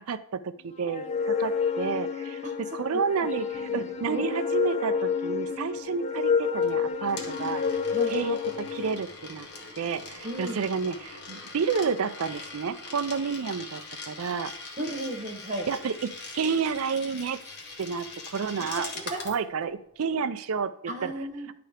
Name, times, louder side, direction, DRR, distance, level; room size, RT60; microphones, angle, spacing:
voice 1, 0.0-2.4 2.7-7.6 8.1-9.5 9.8-14.5 15.7-17.4 17.8-18.9 19.2-21.1, right 5 dB, 70° right, 11 dB, 0.5 m, -30 dB
sound 1, 0.9-9.0, left 6 dB, 30° left, 0.5 m, -29 dB
voice 2, 3.7-4.3 7.9-8.2 10.2-10.6 14.8-15.7 18.6-19.2 20.9-21.5, right 1 dB, 35° right, 3 dB, 1.1 m, -35 dB
Coin (dropping), 6.6-19.4, left 3 dB, 50° left, 1.0 m, -42 dB
10.0 x 3.4 x 5.0 m, 0.74 s
head